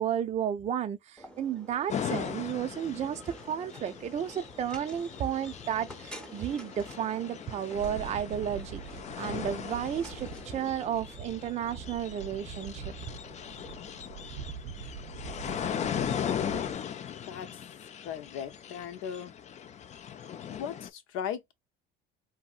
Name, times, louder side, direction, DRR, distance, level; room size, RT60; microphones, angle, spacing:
voice 1, 0.0-8.8 9.2-12.9, right 9 dB, 30° right, 0.4 m, -33 dB
sound 1, 1.2-13.8, right 1 dB, 5° left, 0.8 m, -50 dB
sound 2, 1.9-20.9, left 9 dB, 35° left, 0.4 m, -38 dB
sound 3, 7.7-16.7, right 6 dB, 80° right, 0.7 m, -44 dB
voice 2, 18.0-19.3 20.5-21.5, left 8 dB, 70° left, 0.7 m, -37 dB
2.7 x 2.7 x 2.3 m
supercardioid pair, 100°, 21 cm